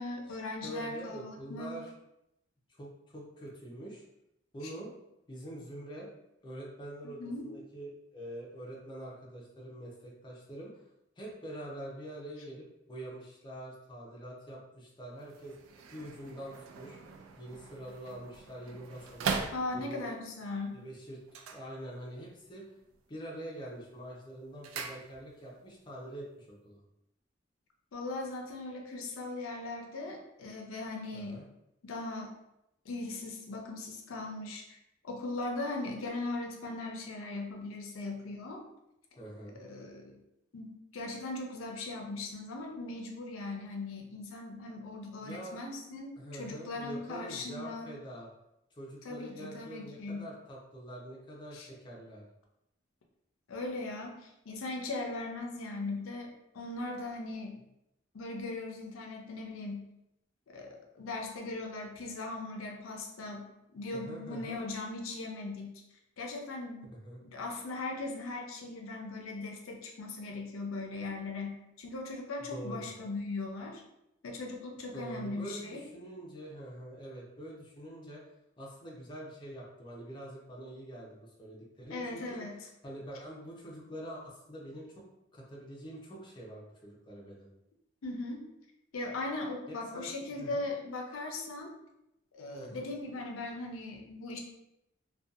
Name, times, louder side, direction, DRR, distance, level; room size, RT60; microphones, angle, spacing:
voice 1, 0.0-1.8 7.0-7.5 19.5-20.8 27.9-31.4 31.8-32.3 32.9-34.8 35.0-38.6 39.6-40.2 40.5-47.9 49.0-50.3 51.5-51.7 53.5-57.6 58.1-59.9 60.5-65.8 66.2-66.9 67.2-73.8 74.2-75.8 81.9-82.6 88.0-88.5 88.9-91.7 92.3-94.4, left 2 dB, 90° left, 1 dB, 0.5 m, -39 dB
voice 2, 0.6-1.9 2.7-4.0 4.5-4.9 5.3-6.1 6.4-10.7 11.2-15.5 15.9-17.0 17.4-19.4 19.7-20.0 20.7-21.2 21.5-22.7 23.1-26.8 31.1-31.5 39.2-39.6 45.2-45.6 46.2-48.3 48.7-52.3 63.9-64.6 66.8-67.2 72.5-72.9 74.9-78.2 78.6-82.4 82.8-85.0 85.3-87.5 89.7-90.6 92.5-92.9, right 1 dB, 25° left, -4 dB, 0.5 m, -45 dB
sound 1, 15.1-20.2 21.2-22.4 22.6-23.1 23.5-25.6 25.8-25.9, right 5 dB, 90° right, 0.3 m, -41 dB
2.6 x 2.2 x 2.4 m, 0.85 s
head